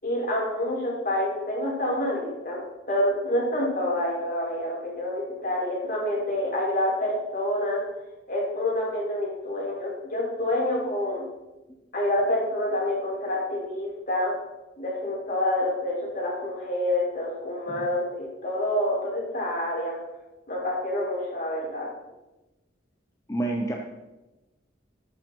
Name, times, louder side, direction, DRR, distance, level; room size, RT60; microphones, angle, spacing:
voice 1, 0.0-2.6 2.9-7.8 8.3-11.3 11.9-14.3 14.8-20.0 20.5-21.9, left 1 dB, 50° left, -4 dB, 5.9 m, -27 dB
voice 2, 23.3-23.8, right 2 dB, 15° left, 0 dB, 1.1 m, -28 dB
13.5 x 11.5 x 4.7 m, 1.0 s
head